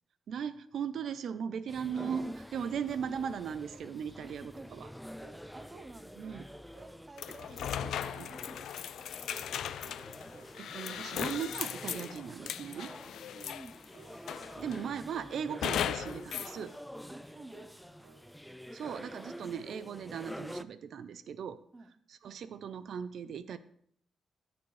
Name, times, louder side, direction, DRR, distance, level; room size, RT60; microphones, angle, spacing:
voice 1, 0.3-4.5 4.8-4.9 6.2-6.5 7.8-7.9 8.2-8.3 10.6-12.9 14.6-16.7 18.7-21.6 22.1-23.6, right 7 dB, 65° right, 13 dB, 0.4 m, -38 dB
sound 1, 1.7-20.6, equal, ahead, 0.3 m, -48 dB
sound 2, 2.1-3.4 3.7-3.9 4.2-4.9 5.2-6.0 6.2-7.0 7.2-7.5 7.8-8.5 8.8-9.0 9.3-9.6 9.8-10.6 10.8-11.1 11.4-11.6 11.9-12.1 12.4-12.6 12.9-13.1 13.4-13.7 13.9-14.2 14.4-14.7 14.9-15.2 15.5-15.7 16.0-16.7 17.0-17.2 17.5-17.8 18.0-18.3, right 6 dB, 90° right, 1.1 m, -58 dB
voice 2, 4.2-4.8 5.5-6.4 6.8-7.8 8.1-9.4 13.2-13.8 17.1-18.2 21.7-21.9, right 2 dB, 20° right, 10 dB, 0.7 m, -53 dB
sound 3, 7.2-13.8 14.3-14.9 15.6-16.6, left 9 dB, 90° left, 0.4 m, -37 dB
17.5 x 7.0 x 3.2 m, 0.67 s
wide cardioid pair, 150°, 0 cm